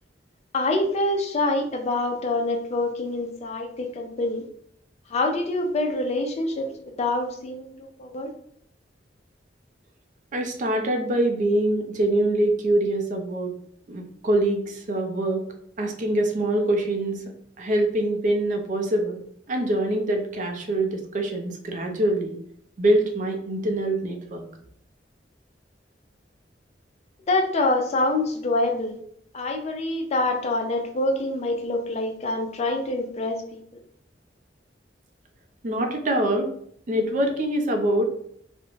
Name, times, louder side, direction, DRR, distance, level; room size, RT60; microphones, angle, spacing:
voice 1, 0.5-4.4 5.1-6.7 7.0-8.3 27.3-29.0 29.3-33.6, left 2 dB, 40° left, 3 dB, 0.4 m, -26 dB
voice 2, 10.3-13.5 13.9-15.4 15.8-17.2 17.6-19.2 19.5-22.4 22.8-24.4 35.6-36.5 36.9-38.1, right 1 dB, 45° right, 3 dB, 0.4 m, -24 dB
2.4 x 2.0 x 3.0 m, 0.65 s
head